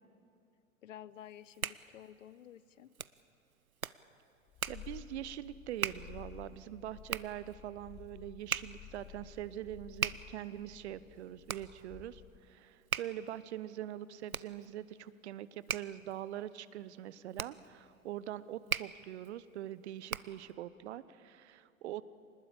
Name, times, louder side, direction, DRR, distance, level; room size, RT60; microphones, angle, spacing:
voice 1, 0.8-2.9, left 11 dB, 65° left, 18 dB, 0.8 m, -52 dB
Hands, 1.2-20.5, right 7 dB, 90° right, 0.6 m, -42 dB
Purr, 4.5-12.6, left 12 dB, 15° left, 0.5 m, -53 dB
voice 2, 4.7-22.0, right 12 dB, 55° right, 17 dB, 0.9 m, -43 dB
24.0 x 20.0 x 8.6 m, 2.5 s
figure-of-eight pair, 95°, 41 cm